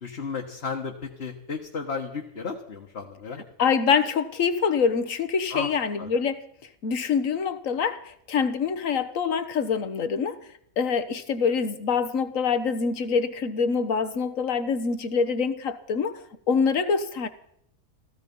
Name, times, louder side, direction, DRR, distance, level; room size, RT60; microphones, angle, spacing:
voice 1, 0.0-3.4 5.5-6.1, left 5 dB, 50° left, 1.7 m, -34 dB
voice 2, 3.6-6.4 6.8-10.4 10.8-17.3, left 6 dB, 70° left, 1.5 m, -25 dB
16.0 x 15.0 x 5.4 m
omnidirectional pair, 1.4 m